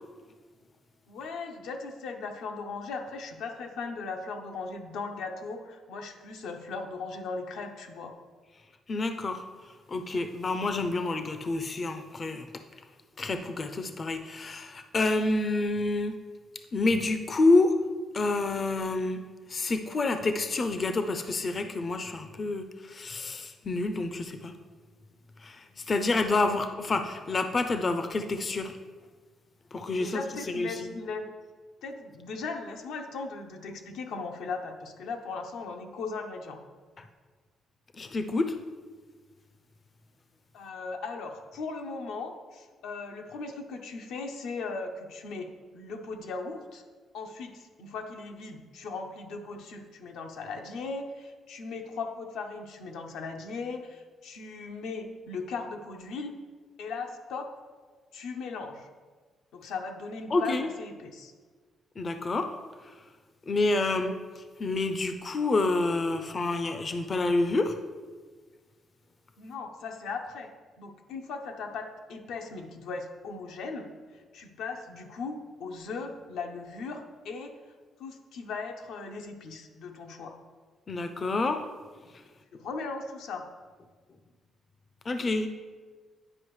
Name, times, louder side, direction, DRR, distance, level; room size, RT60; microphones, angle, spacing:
voice 1, 1.1-8.1 30.0-31.3 31.8-36.6 40.5-46.8 47.1-56.3 56.8-57.5 58.1-58.9 59.5-61.3 69.4-70.5 70.8-77.6 78.0-80.4 82.5-83.4, left 4 dB, 85° left, 4 dB, 0.8 m, -38 dB
voice 2, 8.9-9.4 9.9-12.5 13.2-16.1 16.7-17.8 18.1-19.2 19.5-24.5 25.4-28.8 29.7-30.2 30.5-30.9 37.0-37.1 38.0-38.6 60.3-60.7 62.0-62.5 62.8-62.9 63.5-67.8 80.9-81.6 85.1-85.5, left 2 dB, 40° left, 7 dB, 0.4 m, -28 dB
9.6 x 5.1 x 3.1 m, 1.5 s
cardioid pair, 90°, 0 cm